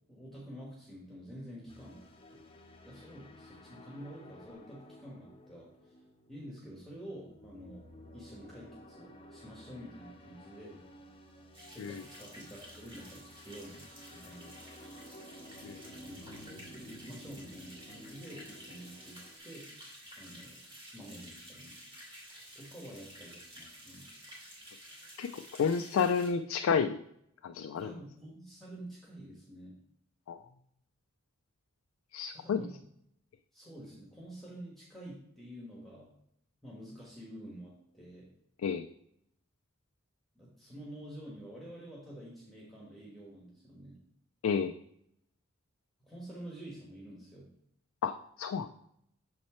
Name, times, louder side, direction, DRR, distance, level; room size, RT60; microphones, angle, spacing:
voice 1, 0.1-2.0 2.3-2.4 2.8-6.0 6.3-7.8 8.1-10.8 11.7-13.9 14.1-14.6 16.0-19.7 20.2-20.6 20.9-21.8 22.5-24.1 27.8-29.8 32.3-32.8 33.5-36.1 36.6-38.3 40.3-44.0 46.1-47.5, right 1 dB, ahead, -5 dB, 1.3 m, -48 dB
sound 1, 1.7-19.4, equal, 25° left, 0.7 m, -54 dB
sound 2, 11.5-26.3, equal, 25° right, 2.6 m, -52 dB
voice 2, 25.2-27.0 27.4-27.9 30.3-30.4 32.1-32.6 38.6-38.9 44.4-44.7 48.0-48.7, left 6 dB, 75° left, 7 dB, 0.3 m, -31 dB
6.5 x 4.3 x 4.3 m, 0.74 s
head